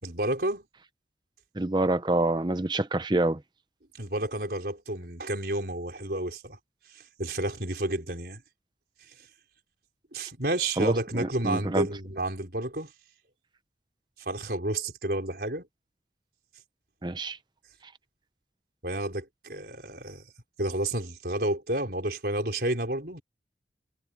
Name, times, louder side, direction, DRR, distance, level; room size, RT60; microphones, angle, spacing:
voice 1, 0.0-0.7 4.0-6.6 6.9-8.4 10.1-12.9 14.2-15.7 18.8-20.2 20.6-23.2, right 1 dB, 60° right, 4.9 m, -31 dB
voice 2, 1.6-3.4 10.8-11.9 17.0-17.4, right 2 dB, 25° right, 0.7 m, -26 dB
head